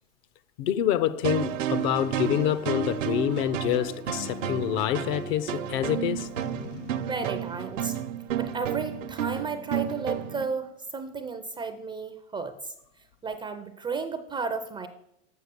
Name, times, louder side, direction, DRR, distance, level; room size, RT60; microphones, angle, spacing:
voice 1, 0.6-6.3, left 11 dB, 50° left, 0.5 m, -27 dB
sound 1, 1.2-10.5, right 8 dB, 80° right, 0.8 m, -31 dB
Boom, 6.4-9.7, left 5 dB, 80° left, 0.8 m, -46 dB
voice 2, 7.0-8.0 8.3-12.7 13.2-14.9, right 4 dB, 15° right, 0.4 m, -33 dB
6.7 x 6.4 x 6.7 m
hypercardioid pair, 120°, 38 cm